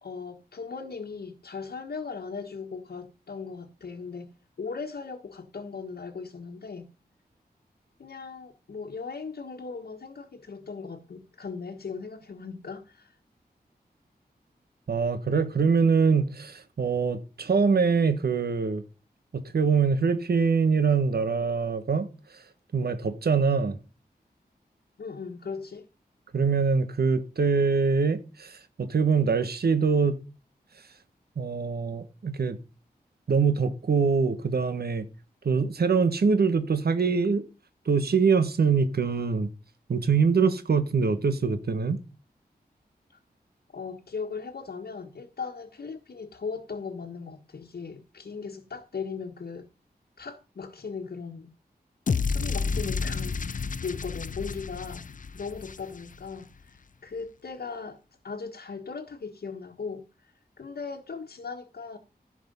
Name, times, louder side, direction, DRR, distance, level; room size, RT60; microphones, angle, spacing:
voice 1, 0.0-4.3 4.6-6.9 8.0-13.2 25.0-25.9 43.1-43.2 43.7-49.7 50.2-51.5 52.3-55.1 55.3-62.0, left 5 dB, 75° left, 1.5 m, -38 dB
voice 2, 14.9-18.8 19.3-22.4 22.7-23.8 26.3-30.2 31.4-32.6 33.3-35.0 35.4-37.4 37.8-39.5 39.9-42.0, right 5 dB, 70° right, 1.3 m, -24 dB
sound 1, 52.1-56.3, left 5 dB, 55° left, 0.7 m, -30 dB
15.0 x 6.1 x 5.5 m
wide cardioid pair, 90°, 17 cm